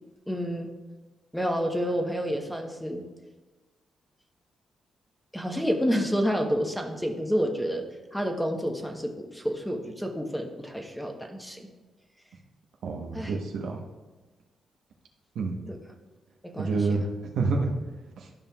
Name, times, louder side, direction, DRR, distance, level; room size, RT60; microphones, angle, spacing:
voice 1, 0.3-0.7 1.3-3.0 5.3-7.8 8.1-11.7 13.1-13.3 15.7-15.8 16.4-16.9, equal, 5° left, 3 dB, 1.0 m, -29 dB
voice 2, 12.8-13.8 15.3-15.6 16.6-17.0 17.3-17.7, right 4 dB, 75° right, 1 dB, 1.0 m, -27 dB
12.5 x 5.4 x 2.3 m, 1.2 s
cardioid pair, 85°, 0 cm